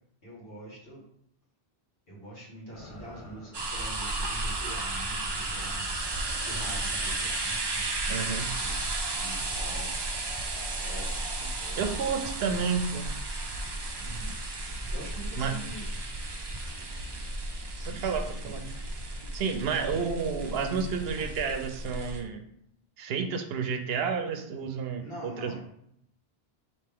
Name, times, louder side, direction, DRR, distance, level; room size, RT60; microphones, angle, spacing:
voice 1, 0.2-1.1 2.1-6.0 6.4-10.3 10.7-11.9 12.4-12.8 13.9-14.4 14.9-15.9 17.7-18.6 19.9-20.3 25.0-25.6, right 1 dB, 70° left, -5 dB, 1.7 m, -45 dB
sound 1, 2.7-3.8 4.8-5.0 5.8-7.4, left 1 dB, 35° left, 0.9 m, -47 dB
sound 2, 3.5-22.2, right 2 dB, 35° right, 0.4 m, -33 dB
voice 2, 8.1-8.5 11.8-13.1 15.4-15.6 17.9-18.7 19.3-22.4 23.0-25.6, right 6 dB, 80° right, 6 dB, 0.8 m, -31 dB
4.3 x 2.8 x 3.4 m, 0.72 s
omnidirectional pair, 1.0 m